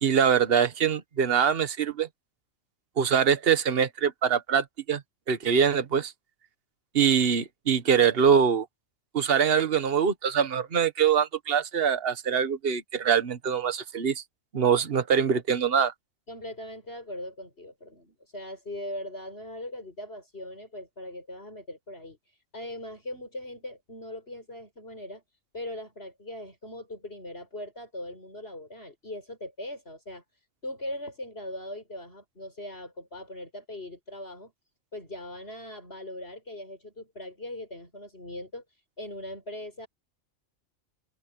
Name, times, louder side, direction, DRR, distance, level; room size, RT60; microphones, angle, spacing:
voice 1, 0.0-2.1 3.0-5.0 5.3-6.1 6.9-8.6 9.1-14.2 14.5-15.9, right 7 dB, 50° right, 1.5 m, -23 dB
voice 2, 16.3-25.2 25.5-30.2 30.6-34.5 34.9-39.9, left 1 dB, 50° left, 7.9 m, -40 dB
omnidirectional pair, 1.4 m